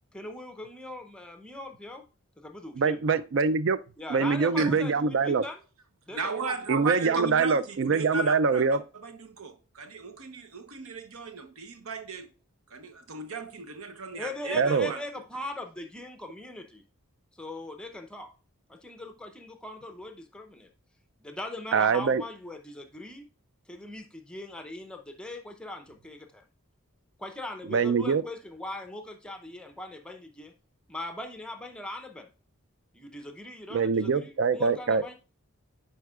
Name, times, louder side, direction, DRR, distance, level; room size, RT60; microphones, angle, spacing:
voice 1, 0.1-2.0 2.4-3.0 4.0-5.6 6.1-6.6 7.2-7.3 7.9-8.1 14.1-16.8 17.3-18.3 18.7-20.7 21.2-23.2 23.7-26.4 27.2-30.5 30.9-32.3 32.9-35.1, left 1 dB, 5° left, 0.6 m, -40 dB
voice 2, 2.8-3.8 4.1-5.4 6.7-8.8 14.6-14.9 21.7-22.2 27.7-28.2 33.7-35.0, right 5 dB, 55° right, 0.4 m, -24 dB
voice 3, 4.6-5.0 6.1-12.3 12.7-15.0, right 4 dB, 75° right, 0.8 m, -36 dB
9.2 x 4.4 x 2.3 m
head